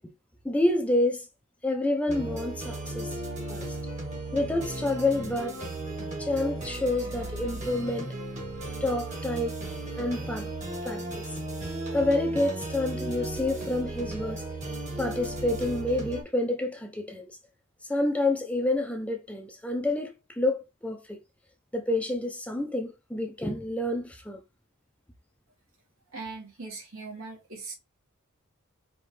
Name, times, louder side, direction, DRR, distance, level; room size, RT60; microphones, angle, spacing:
voice 1, 0.4-1.3 1.6-3.1 3.5-3.8 4.3-5.6 6.2-8.1 8.8-9.6 10.0-10.5 10.8-11.3 11.9-14.4 15.0-17.4 17.9-21.2 21.7-24.4, left 2 dB, 5° left, 0.6 m, -28 dB
sound 1, 2.1-16.2, right 2 dB, 35° right, 1.7 m, -35 dB
voice 2, 26.1-27.7, right 3 dB, 70° right, 2.6 m, -40 dB
5.0 x 3.2 x 3.3 m
head